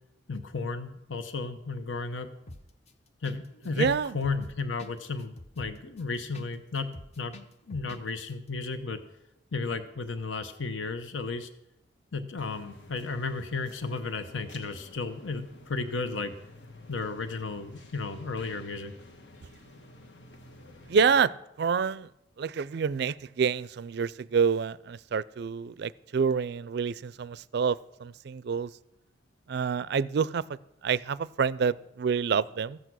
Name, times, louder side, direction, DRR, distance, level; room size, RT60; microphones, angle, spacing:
voice 1, 0.3-2.3 3.2-6.9 7.2-7.4 7.7-9.0 9.5-11.5 12.1-16.3 16.9-18.9, left 4 dB, 90° left, 9 dB, 0.8 m, -33 dB
sound 1, 2.5-2.9 3.2-3.4 3.6-6.5 6.8-8.0 8.3-8.4, left 1 dB, 35° left, 0.7 m, -46 dB
voice 2, 3.7-4.1 20.9-21.3 21.6-22.1 22.4-28.7 29.5-32.8, right 6 dB, 60° right, 19 dB, 0.4 m, -27 dB
sound 2, 12.4-21.2, left 2 dB, 70° left, 1.3 m, -51 dB
14.0 x 8.1 x 6.1 m, 0.85 s
head